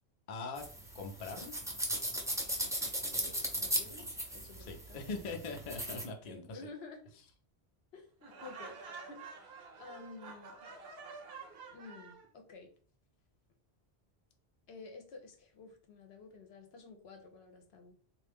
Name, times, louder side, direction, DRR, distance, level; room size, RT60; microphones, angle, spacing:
voice 1, 0.3-0.6 0.9-1.8 4.7-6.7, left 3 dB, 50° left, 3 dB, 0.6 m, -42 dB
sound 1, 0.6-6.0, equal, 5° right, 0.5 m, -37 dB
voice 2, 3.1-5.1 6.2-7.0 7.9-9.5 9.8-10.6 11.7-12.7 14.7-17.9, left 3 dB, 75° left, 4 dB, 1.0 m, -52 dB
Laughter, 8.2-12.3, right 5 dB, 75° right, 0.9 m, -49 dB
3.3 x 2.5 x 3.4 m, 0.43 s
omnidirectional pair, 1.1 m